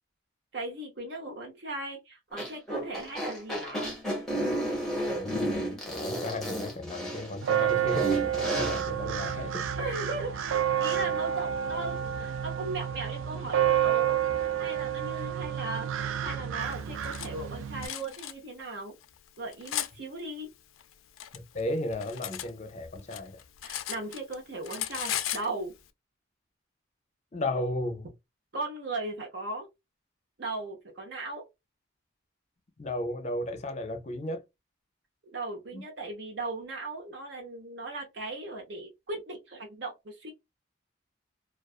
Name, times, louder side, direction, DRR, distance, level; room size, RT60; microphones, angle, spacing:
voice 1, 0.5-4.0 9.8-18.9 19.4-20.5 23.6-25.7 28.5-29.7 30.4-31.5 35.3-40.3, right 2 dB, 60° right, 0.7 m, -37 dB
sound 1, 2.3-8.8, right 1 dB, ahead, 0.7 m, -32 dB
voice 2, 5.1-9.7 21.3-23.4 27.3-28.1 32.8-34.4 35.7-35.8, left 1 dB, 35° left, 0.5 m, -34 dB
sound 2, 7.4-17.9, right 9 dB, 85° right, 0.3 m, -29 dB
Cutlery silverware, 16.7-17.3 17.8-18.3 19.0-19.9 20.8-22.5 22.8-24.4 24.6-25.5, left 12 dB, 90° left, 0.4 m, -36 dB
2.3 x 2.3 x 2.3 m
head